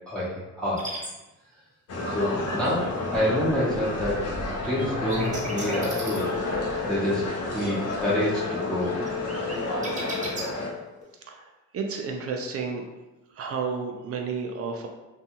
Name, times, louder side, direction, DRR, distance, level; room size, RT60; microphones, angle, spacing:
voice 1, 0.1-0.9 2.1-4.3 4.6-6.3 6.8-7.2 7.5-9.0, left 1 dB, 5° left, -9 dB, 0.7 m, -27 dB
sound 1, 0.8-1.1 4.6-6.6 6.9-7.8 8.1-8.6 9.1-10.4, right 2 dB, 25° right, 0.9 m, -36 dB
sound 2, 1.9-10.7, left 1 dB, 55° left, 0.6 m, -31 dB
sound 3, 5.5-11.0, left 11 dB, 70° left, 1.0 m, -37 dB
voice 2, 11.3-12.8 13.3-14.9, right 5 dB, 50° right, 3 dB, 0.5 m, -32 dB
2.6 x 2.3 x 2.8 m, 1.1 s
cardioid pair, 90°, 30 cm